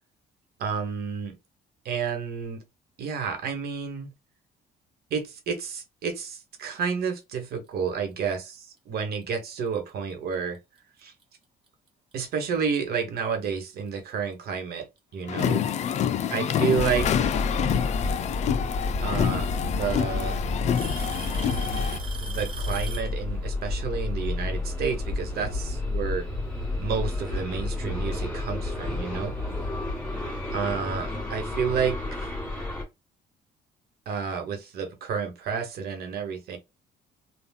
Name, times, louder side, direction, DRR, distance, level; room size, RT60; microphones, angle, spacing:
voice 1, 0.6-1.3 1.8-2.6 3.0-4.1 5.1-10.6 11.0-11.1 12.1-14.9 15.1-15.6 16.3-17.4 19.0-20.4 22.2-26.3 26.8-29.4 30.5-32.0 34.1-36.6, right 6 dB, 65° right, 1.1 m, -30 dB
Alarm / Tick-tock, 9.2-9.5 10.3-10.4 11.2-11.3 13.0-13.1 14.3-14.4 15.7-16.1 17.9-18.0 19.2-19.3 19.6-20.1 20.7-23.2, right 4 dB, 30° right, 0.9 m, -39 dB
sound 1, 15.3-22.0, left 8 dB, 40° left, 0.4 m, -27 dB
sound 2, 16.8-32.8, left 2 dB, 5° left, 1.8 m, -31 dB
3.4 x 2.3 x 2.3 m
cardioid pair, 110°, 17 cm